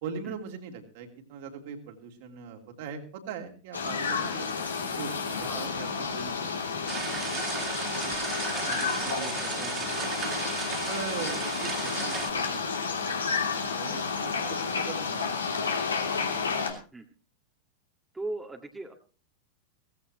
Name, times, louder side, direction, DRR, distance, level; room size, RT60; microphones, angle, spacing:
voice 1, 0.0-4.5 4.9-6.9 7.3-8.1 8.7-10.4 10.9-16.2, right 6 dB, 50° right, 2 dB, 3.0 m, -42 dB
sound 1, 3.7-16.7, left 5 dB, 75° left, 2.9 m, -31 dB
sound 2, 6.9-12.3, right 6 dB, 25° right, 2.7 m, -35 dB
voice 2, 18.1-18.9, right 2 dB, 10° right, 2 dB, 1.9 m, -38 dB
18.0 x 15.5 x 3.0 m, 0.37 s
figure-of-eight pair, 90°, 0 cm